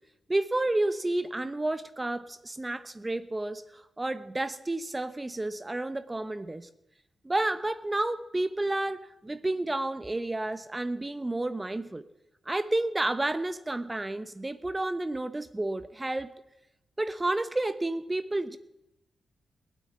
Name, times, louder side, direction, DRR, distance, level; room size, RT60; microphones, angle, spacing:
voice 1, 0.3-6.7 7.2-12.0 12.5-16.3 17.0-18.6, right 2 dB, 20° right, 12 dB, 0.9 m, -31 dB
17.0 x 9.4 x 8.7 m, 0.88 s
cardioid pair, 60°, 0 cm